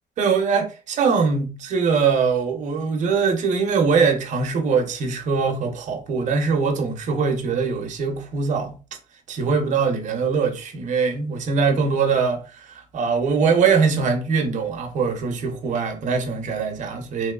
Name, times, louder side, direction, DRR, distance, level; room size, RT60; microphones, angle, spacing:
voice 1, 0.2-8.8 9.3-17.3, right 5 dB, 45° right, 0.7 m, -22 dB
3.0 x 3.0 x 2.3 m
cardioid pair, 165°, 18 cm